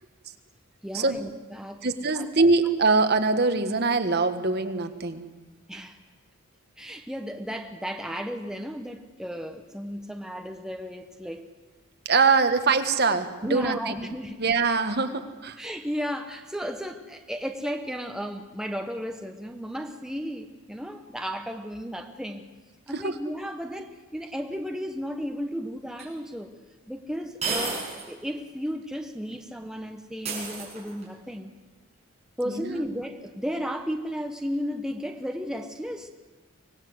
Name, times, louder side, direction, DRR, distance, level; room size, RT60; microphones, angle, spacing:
voice 1, 0.8-1.8 2.1-2.3 5.7-6.0 6.8-11.5 13.4-14.5 15.6-22.5 22.9-26.5 26.9-27.8 28.1-31.6 32.4-36.1, equal, 5° right, 5 dB, 1.1 m, -34 dB
voice 2, 1.8-5.3 12.1-13.9 14.4-15.6 22.9-23.2 32.4-32.8, right 4 dB, 50° right, 8 dB, 1.6 m, -23 dB
sound 1, 26.0-26.1 27.4-28.1 28.5-28.6 30.2-31.1, right 4 dB, 30° right, 7.2 m, -31 dB
25.0 x 19.0 x 8.0 m, 1.3 s
head